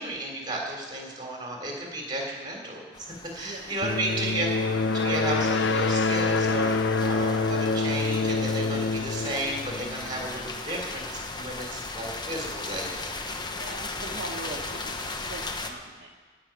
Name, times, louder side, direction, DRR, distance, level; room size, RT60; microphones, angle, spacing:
voice 1, 0.0-4.5 4.9-13.1, right 1 dB, 20° right, 0 dB, 3.5 m, -33 dB
sound 1, 2.9-15.7, left 3 dB, 20° left, 0.9 m, -37 dB
voice 2, 3.4-3.8 13.6-15.0 15.3-16.1, right 2 dB, 45° right, -4 dB, 1.4 m, -40 dB
sound 2, 3.8-10.5, left 3 dB, 60° left, 0.6 m, -26 dB
16.5 x 6.5 x 8.9 m, 1.5 s
head